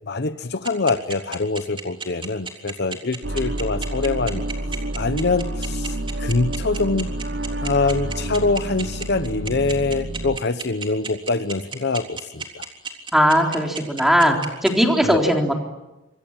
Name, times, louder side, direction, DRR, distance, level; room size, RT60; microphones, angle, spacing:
voice 1, 0.1-4.4 4.9-7.1 7.6-12.6 15.0-15.4, left 3 dB, 55° left, 11 dB, 0.9 m, -24 dB
sound 1, 0.6-14.7, right 5 dB, 25° right, 3.6 m, -31 dB
sound 2, 3.2-10.4, right 1 dB, 60° right, 1.2 m, -29 dB
voice 2, 13.1-14.4 14.6-15.5, equal, ahead, 2 dB, 3.7 m, -18 dB
26.5 x 23.5 x 8.9 m, 1.0 s
head